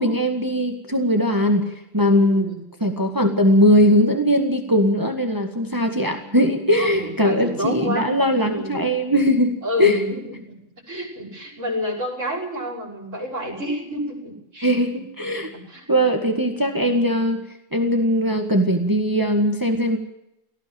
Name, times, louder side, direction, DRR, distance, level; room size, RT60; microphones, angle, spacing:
voice 1, 0.0-1.7 1.9-2.5 2.8-10.0 14.6-15.5 15.9-17.4 17.7-20.0, equal, 15° right, 4 dB, 1.8 m, -20 dB
voice 2, 2.1-2.6 6.8-8.1 8.4-8.9 9.6-10.6 10.9-14.7 15.5-15.9, equal, 70° right, 0 dB, 6.0 m, -29 dB
18.0 x 16.0 x 8.9 m, 0.86 s
omnidirectional pair, 1.3 m